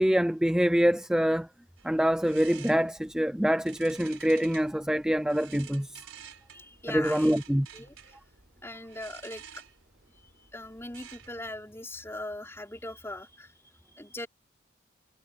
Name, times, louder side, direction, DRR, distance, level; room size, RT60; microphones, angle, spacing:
voice 1, 0.0-1.5 1.8-6.0 6.9-7.7, equal, 5° right, 0.4 m, -25 dB
sound 1, 1.8-11.5, right 9 dB, 80° right, 4.6 m, -51 dB
voice 2, 6.5-7.3 7.7-8.2 8.6-9.6 10.5-14.3, left 1 dB, 10° left, 3.9 m, -40 dB
head